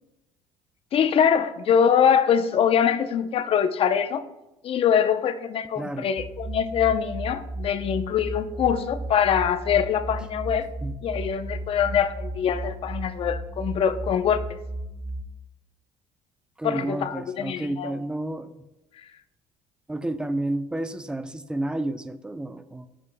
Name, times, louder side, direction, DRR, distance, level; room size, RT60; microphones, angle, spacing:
voice 1, 0.9-4.2 4.6-10.7 11.0-14.6 16.6-17.9, left 8 dB, 50° left, 11 dB, 0.7 m, -23 dB
voice 2, 5.8-6.1 10.8-10.9 16.6-18.7 19.9-22.9, right 1 dB, 5° right, 10 dB, 0.6 m, -31 dB
sound 1, 6.2-15.2, right 1 dB, 45° right, 1.8 m, -34 dB
16.0 x 6.2 x 2.2 m, 0.96 s
supercardioid pair, 95°, 12 cm